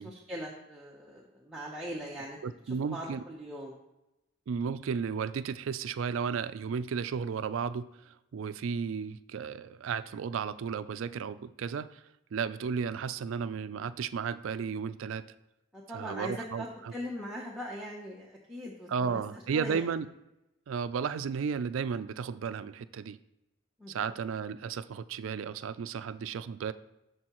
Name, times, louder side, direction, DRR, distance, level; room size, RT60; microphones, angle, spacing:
voice 1, 0.0-2.4 2.7-3.7 15.7-19.9 23.8-24.1, equal, 5° right, -5 dB, 0.7 m, -41 dB
voice 2, 2.4-3.2 4.5-12.0 12.3-15.3 15.9-16.9 18.9-20.1 20.7-23.2 23.9-26.7, right 6 dB, 80° right, 14 dB, 0.4 m, -34 dB
12.5 x 4.6 x 3.0 m, 0.89 s
head